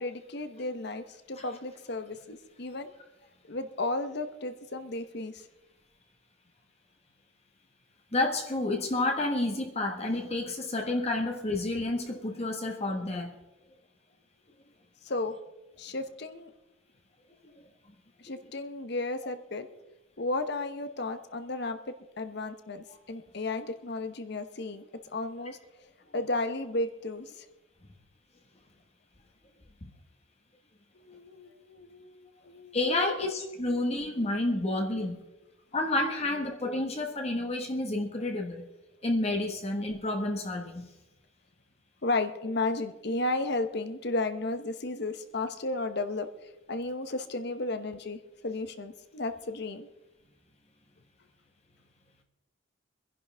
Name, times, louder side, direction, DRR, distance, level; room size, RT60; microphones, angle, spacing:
voice 1, 0.0-2.9 3.5-5.4 15.0-15.4 15.8-16.5 18.2-19.7 20.2-25.6 26.1-27.4 31.0-32.8 33.7-33.8 42.0-46.3 46.7-49.9, left 2 dB, 55° left, 9 dB, 1.0 m, -33 dB
voice 2, 8.1-13.3 17.4-17.7 22.9-23.0 29.8-29.9 32.7-35.2 35.7-38.7 39.0-40.8, left 2 dB, 30° left, 3 dB, 1.4 m, -30 dB
24.5 x 11.0 x 3.5 m, 1.0 s
head